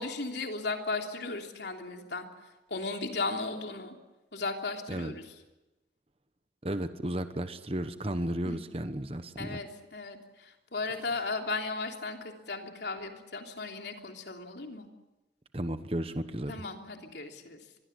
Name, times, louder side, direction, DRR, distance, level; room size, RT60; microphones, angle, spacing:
voice 1, 0.0-2.3 2.7-3.9 4.3-5.3 8.4-8.6 9.4-14.9 16.5-17.6, left 3 dB, 70° left, 3 dB, 3.3 m, -36 dB
voice 2, 6.6-9.6 15.5-16.5, right 1 dB, 30° right, 10 dB, 1.2 m, -33 dB
24.5 x 21.5 x 8.2 m, 1.0 s
head